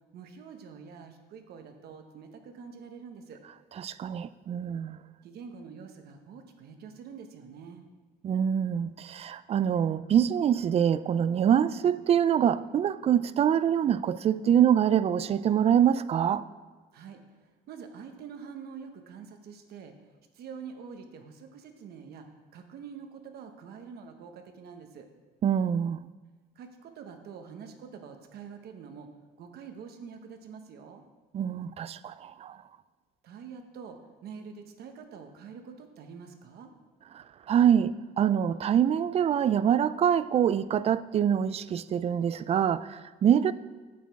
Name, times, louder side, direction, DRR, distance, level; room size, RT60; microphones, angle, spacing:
voice 1, 0.1-3.4 5.2-7.8 16.9-17.2 17.7-19.9 20.3-22.3 22.5-25.1 26.5-29.1 29.4-31.0 33.2-36.7, right 6 dB, 70° right, 1.2 m, -45 dB
voice 2, 3.8-5.0 8.2-16.4 25.4-26.0 31.3-32.6 37.5-43.5, right 9 dB, 40° right, 0.4 m, -25 dB
8.3 x 7.5 x 4.7 m
cardioid pair, 110°, 17 cm